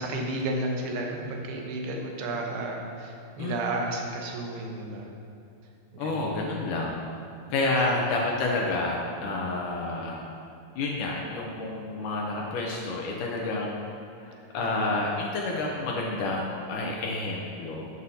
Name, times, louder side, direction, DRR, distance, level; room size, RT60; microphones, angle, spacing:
voice 1, 0.0-5.1 5.9-6.4 7.8-8.0 14.6-14.8, right 2 dB, 90° right, 1 dB, 3.0 m, -32 dB
voice 2, 6.0-7.0 7.5-10.2 10.8-13.9 14.2-17.8, left 2 dB, 75° left, -1 dB, 2.1 m, -29 dB
13.0 x 7.8 x 2.8 m, 2.6 s
omnidirectional pair, 4.4 m